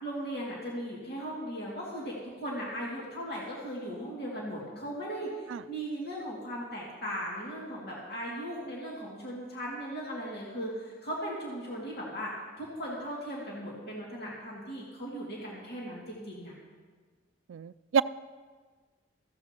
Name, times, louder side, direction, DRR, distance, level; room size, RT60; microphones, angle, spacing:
voice 1, 0.0-12.3 12.6-16.5, equal, 55° left, -5 dB, 2.3 m, -38 dB
voice 2, 17.5-18.0, right 6 dB, 70° right, 16 dB, 0.3 m, -28 dB
15.5 x 15.0 x 2.9 m, 1.5 s
head